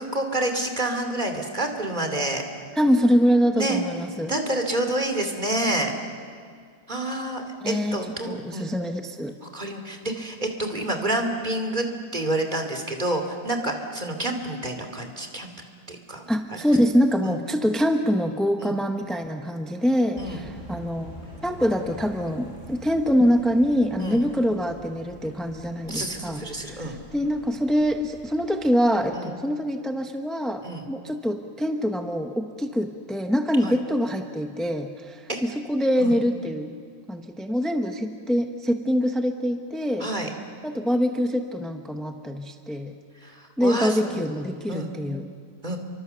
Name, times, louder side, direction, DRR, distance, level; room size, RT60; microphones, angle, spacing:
voice 1, 0.0-2.4 3.6-3.8 4.3-5.9 6.9-8.7 9.4-11.8 12.1-15.5 15.9-16.2 17.2-17.3 18.6-18.8 20.2-20.4 24.0-24.3 25.9-27.0 29.1-29.3 30.6-30.9 33.6-33.7 35.3-35.4 36.0-36.1 40.0-40.3 43.2-44.3 44.7-44.9 45.6-45.8, right 1 dB, 25° right, 4 dB, 2.8 m, -28 dB
voice 2, 2.7-4.3 7.6-8.0 8.3-9.3 16.3-21.1 21.4-36.8 37.1-40.1 40.6-42.9 43.6-45.3, equal, ahead, 5 dB, 0.6 m, -24 dB
sound 1, 20.2-29.1, left 1 dB, 25° left, 7.4 m, -45 dB
30.0 x 24.5 x 6.9 m, 2.1 s
omnidirectional pair, 2.0 m